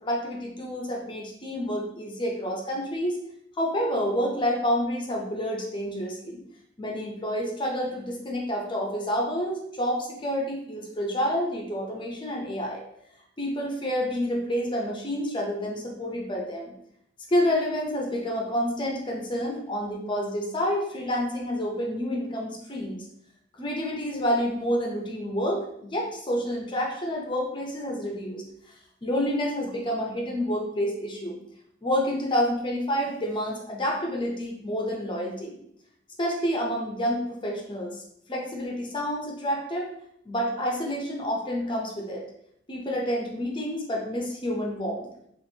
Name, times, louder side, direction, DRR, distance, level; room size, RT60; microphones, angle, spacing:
voice 1, 0.0-3.2 3.6-6.4 6.8-12.8 13.4-16.7 17.3-23.1 23.6-28.4 29.0-31.4 31.8-35.6 36.2-38.0 38.3-39.9 40.3-42.2 42.7-45.1, equal, 25° left, -1 dB, 0.6 m, -28 dB
4.2 x 2.5 x 2.7 m, 0.74 s
head